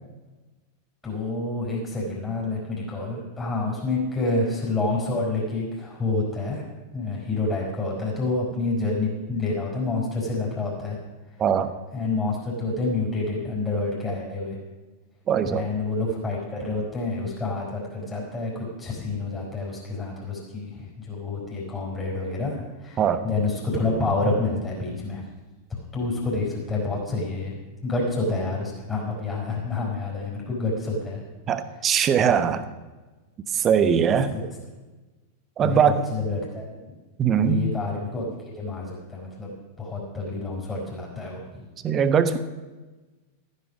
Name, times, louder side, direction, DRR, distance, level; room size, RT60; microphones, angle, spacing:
voice 1, 1.0-6.6 6.9-11.0 11.9-14.6 15.4-25.2 25.7-27.5 27.8-31.2 33.8-34.4 35.6-35.8 36.1-36.8 37.3-41.6, left 3 dB, 15° left, -5 dB, 5.1 m, -28 dB
voice 2, 11.4-11.7 15.3-15.6 23.0-23.2 31.5-32.7 33.5-34.3 35.6-36.1 37.2-37.6 41.8-42.4, right 7 dB, 30° right, 12 dB, 1.1 m, -21 dB
14.0 x 10.0 x 6.2 m, 1.2 s
figure-of-eight pair, 90°, 0 cm